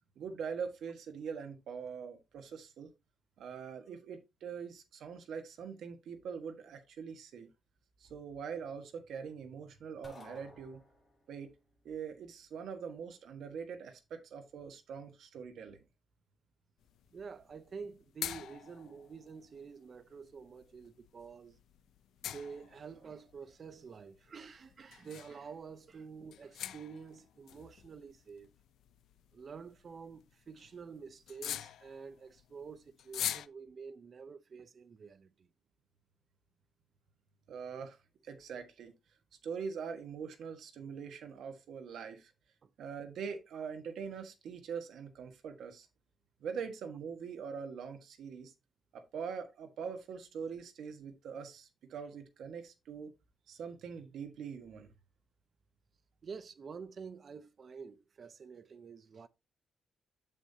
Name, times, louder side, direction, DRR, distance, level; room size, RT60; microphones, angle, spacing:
voice 1, 0.2-2.9 3.4-7.5 8.0-10.8 11.3-11.5 11.8-15.8 37.5-38.0 38.2-38.9 39.4-42.3 42.8-45.9 46.4-48.5 48.9-53.1 53.5-54.9, right 6 dB, 65° right, 1.4 m, -43 dB
sound 1, 10.0-11.3, left 2 dB, 15° left, 3.1 m, -54 dB
sound 2, 16.8-33.5, left 11 dB, 75° left, 0.5 m, -46 dB
voice 2, 17.1-21.6 22.2-28.5 29.3-35.5 42.6-42.7 56.2-59.3, right 5 dB, 35° right, 0.6 m, -48 dB
7.3 x 7.0 x 2.8 m
cardioid pair, 175°, 0 cm